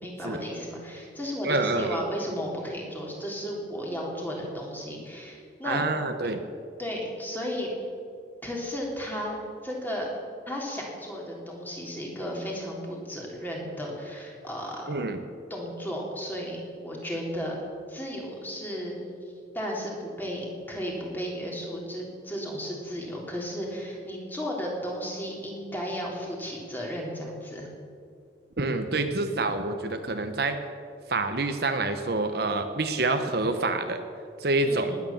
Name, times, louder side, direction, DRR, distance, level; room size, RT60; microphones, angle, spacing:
voice 1, 0.0-5.8 6.8-7.7 8.4-10.1 10.5-14.8 15.5-17.5 17.9-18.9 19.5-27.7 34.7-35.0, equal, 10° left, -2 dB, 3.3 m, -34 dB
voice 2, 1.4-2.1 5.6-6.4 14.9-15.2 28.6-30.6 31.1-34.0 34.4-34.9, right 2 dB, 60° right, 7 dB, 1.0 m, -27 dB
19.5 x 9.8 x 7.2 m, 2.4 s
head